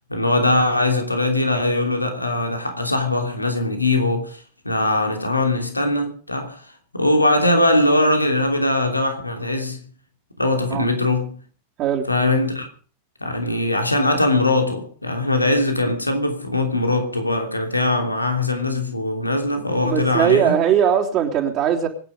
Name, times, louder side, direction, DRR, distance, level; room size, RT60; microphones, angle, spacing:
voice 1, 0.1-6.6 6.9-9.8 10.4-11.4 12.1-12.7 13.2-20.5, left 2 dB, 85° left, 3.0 m, -21 dB
voice 2, 19.6-21.9, right 9 dB, 35° right, 3.4 m, -20 dB
24.5 x 10.0 x 5.2 m
figure-of-eight pair, 90°, 0 cm